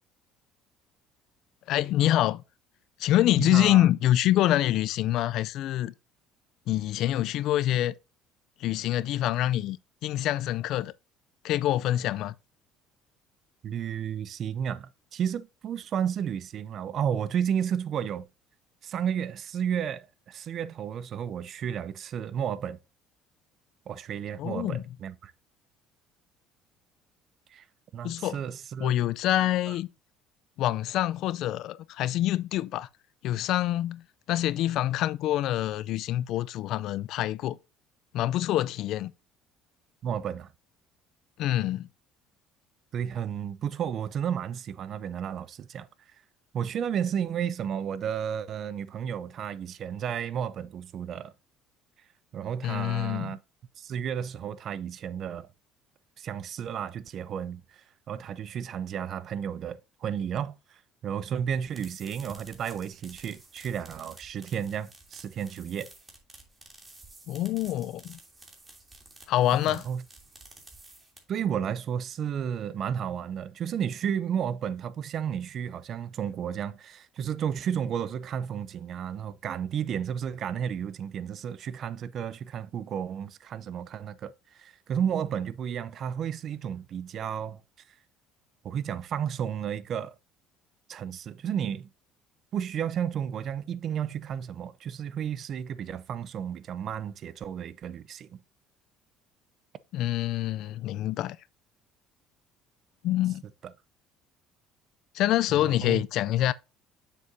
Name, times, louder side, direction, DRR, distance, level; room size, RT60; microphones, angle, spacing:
voice 1, 1.7-2.4 3.0-5.9 6.7-7.9 8.6-9.8 10.0-10.9 11.4-12.3 24.4-24.8 28.0-28.4 28.8-29.9 30.6-32.9 33.2-34.0 34.3-37.6 38.1-39.1 41.4-41.9 52.6-53.3 67.3-68.2 69.3-69.9 99.9-101.4 103.0-103.4 105.1-106.5, left 13 dB, 65° left, 0.4 m, -26 dB
voice 2, 3.4-3.9 13.6-18.3 18.8-22.8 23.9-25.3 27.5-27.6 27.9-28.9 29.7-29.8 40.0-40.5 42.9-45.9 46.5-51.3 52.3-53.4 53.8-55.5 56.2-60.5 61.0-65.9 69.7-70.0 71.3-87.6 88.6-90.1 90.9-91.9 92.5-98.4 103.6-103.7 105.6-106.0, right 8 dB, 55° right, 0.5 m, -32 dB
sound 1, 61.5-71.5, right 2 dB, 20° right, 2.8 m, -52 dB
7.4 x 6.8 x 2.7 m
supercardioid pair, 85°, 0 cm